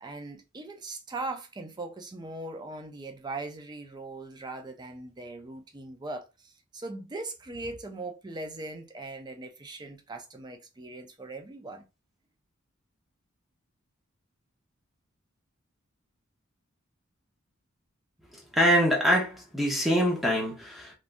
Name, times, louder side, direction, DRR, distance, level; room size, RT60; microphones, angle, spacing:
voice 1, 0.0-11.8, right 2 dB, 20° right, 0.4 m, -40 dB
voice 2, 18.3-20.9, equal, ahead, 0.8 m, -24 dB
3.4 x 2.5 x 2.5 m
head